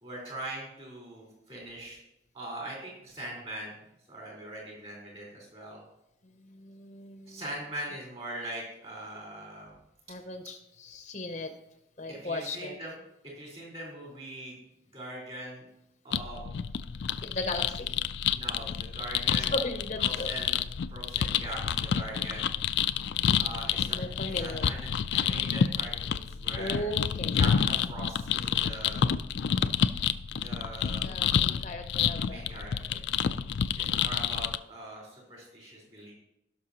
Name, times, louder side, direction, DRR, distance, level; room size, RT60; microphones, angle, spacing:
voice 1, 0.0-2.0 2.3-5.8 7.3-9.7 12.1-12.9 13.2-14.6 14.9-15.7 16.0-16.5 18.3-19.5 20.0-20.6 20.9-22.5 23.3-24.0 24.4-26.9 27.3-29.1 30.4-31.2 32.2-33.1 33.8-36.1, right 1 dB, 35° right, -3 dB, 4.1 m, -41 dB
voice 2, 6.2-7.4 10.1-11.5 12.0-12.8 17.2-18.0 19.5-20.4 23.1-24.7 26.6-27.4 31.0-32.4 32.9-33.0, left 2 dB, 40° left, 6 dB, 0.7 m, -37 dB
sound 1, 16.1-34.6, left 8 dB, 65° left, 0.3 m, -29 dB
17.0 x 6.1 x 2.9 m, 0.84 s
head